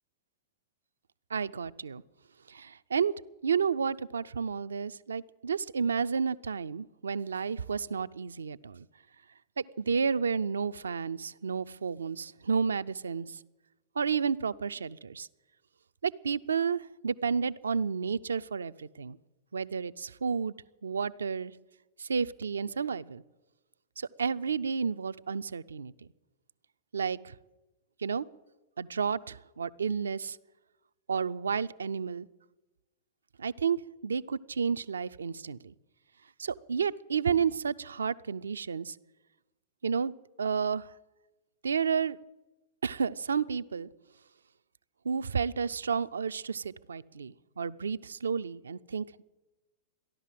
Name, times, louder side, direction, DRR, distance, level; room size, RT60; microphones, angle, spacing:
voice 1, 1.3-2.0 2.5-3.1 3.4-8.9 9.6-13.4 14.0-15.3 16.0-19.2 19.5-20.5 20.8-21.5 22.0-23.2 24.0-25.9 26.9-27.3 28.0-28.2 28.8-30.4 31.1-32.3 33.4-35.7 36.4-39.0 39.8-40.1 40.4-40.9 41.6-42.2 42.8-43.9 45.0-49.2, right 6 dB, 85° right, 13 dB, 0.4 m, -31 dB
14.5 x 11.0 x 7.5 m, 1.1 s
hypercardioid pair, 105°, 0 cm